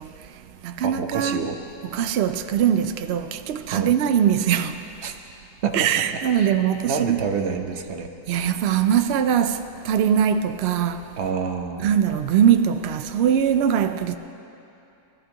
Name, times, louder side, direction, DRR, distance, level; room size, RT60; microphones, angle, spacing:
voice 1, 0.0-1.4 1.9-4.9 5.7-7.3 8.3-11.1 11.8-14.2, right 9 dB, 90° right, 0.5 m, -22 dB
voice 2, 0.8-1.6 3.7-3.9 5.0-5.1 5.6-5.9 6.3-6.6 6.9-8.1 11.2-11.9, right 5 dB, 50° right, 1.0 m, -27 dB
20.0 x 13.5 x 2.9 m
omnidirectional pair, 1.6 m